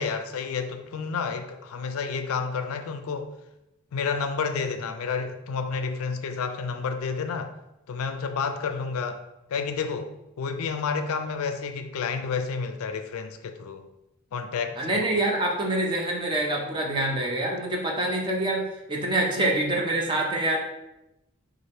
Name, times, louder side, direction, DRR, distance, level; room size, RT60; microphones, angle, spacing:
voice 1, 0.0-3.3 3.9-7.5 7.9-9.2 9.5-13.9 14.3-15.0, left 5 dB, 75° left, 8 dB, 0.4 m, -30 dB
voice 2, 14.8-20.6, right 1 dB, 20° right, 0 dB, 0.5 m, -26 dB
3.2 x 2.4 x 4.2 m, 0.93 s
head